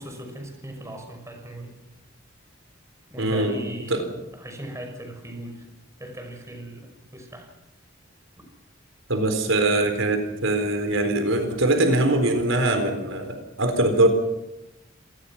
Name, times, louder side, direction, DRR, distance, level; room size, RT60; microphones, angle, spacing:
voice 1, 0.0-1.8 3.1-3.9 4.3-5.7 6.0-7.5 8.4-8.5, right 1 dB, 15° right, 4 dB, 5.9 m, -38 dB
voice 2, 3.2-3.6 3.9-4.1 9.1-14.1, right 2 dB, 90° right, 6 dB, 4.1 m, -22 dB
27.0 x 20.0 x 6.0 m, 0.94 s
head